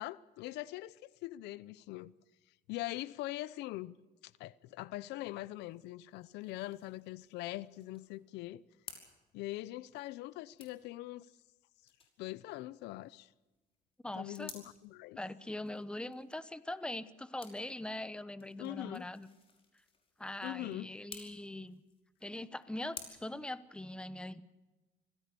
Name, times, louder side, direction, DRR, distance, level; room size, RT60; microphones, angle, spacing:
voice 1, 0.0-2.1 2.7-3.9 4.2-8.6 9.3-11.3 12.2-13.3 14.2-15.2 18.6-19.1 20.4-20.9, left 17 dB, 90° left, 0.7 m, -42 dB
sound 1, 5.0-23.0, left 4 dB, 35° left, 5.3 m, -57 dB
voice 2, 14.0-14.5 15.2-19.3 20.2-21.8 22.2-24.4, left 1 dB, 5° left, 1.0 m, -42 dB
26.0 x 17.5 x 6.9 m
cardioid pair, 110°, 17 cm